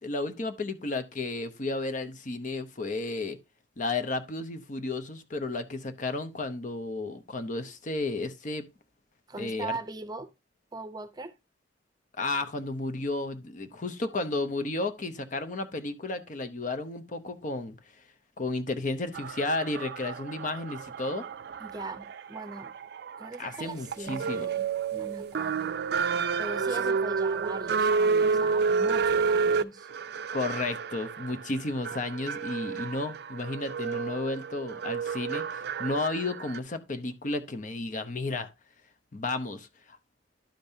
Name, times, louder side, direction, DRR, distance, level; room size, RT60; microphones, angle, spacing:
voice 1, 0.0-3.4 3.8-8.7 9.4-9.8 12.2-17.8 18.4-21.2 23.4-24.5 30.3-38.5 39.1-40.0, left 2 dB, 45° left, 0.7 m, -33 dB
voice 2, 9.3-10.3 10.7-11.3 21.6-22.7 23.2-25.7 26.4-29.9, right 3 dB, 20° right, 0.7 m, -40 dB
sound 1, 19.1-36.6, right 5 dB, 60° right, 0.4 m, -30 dB
11.5 x 5.2 x 2.7 m
head